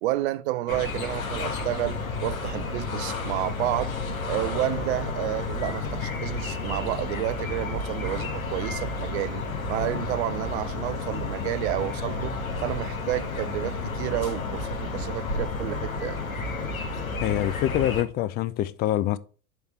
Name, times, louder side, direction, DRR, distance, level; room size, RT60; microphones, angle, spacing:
voice 1, 0.0-3.9 4.2-9.4 9.7-12.3 12.6-16.2, right 15 dB, 55° right, 0.6 m, -30 dB
sound 1, 0.7-18.0, left 3 dB, 80° left, 1.7 m, -31 dB
voice 2, 17.2-19.2, left 13 dB, 25° left, 0.4 m, -25 dB
6.4 x 4.5 x 5.6 m
figure-of-eight pair, 85°, 41 cm